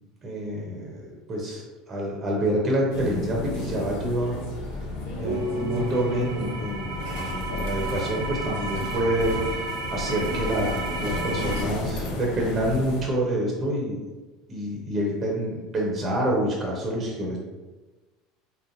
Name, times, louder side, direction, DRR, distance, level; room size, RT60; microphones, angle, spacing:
voice 1, 0.2-4.4 5.2-14.0 14.5-17.4, right 1 dB, 35° right, -2 dB, 0.8 m, -27 dB
sound 1, 2.9-13.0, left 2 dB, 65° left, 0.6 m, -33 dB
sound 2, 5.2-11.6, right 3 dB, 75° right, 0.5 m, -33 dB
3.7 x 2.1 x 2.6 m, 1.2 s
hypercardioid pair, 70°, 0 cm